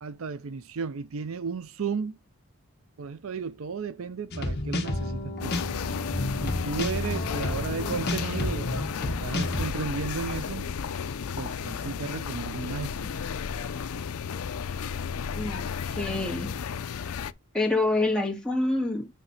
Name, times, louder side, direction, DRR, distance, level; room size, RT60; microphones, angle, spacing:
voice 1, 0.0-2.2 3.0-5.6 6.4-10.7 11.4-13.1, right 5 dB, 65° right, 0.5 m, -34 dB
sound 1, 4.3-9.7, left 1 dB, 50° left, 1.6 m, -31 dB
sound 2, 5.4-17.3, left 6 dB, 75° left, 0.5 m, -33 dB
voice 2, 15.3-16.5 17.5-19.1, left 2 dB, 5° left, 1.9 m, -27 dB
9.3 x 3.3 x 5.6 m
head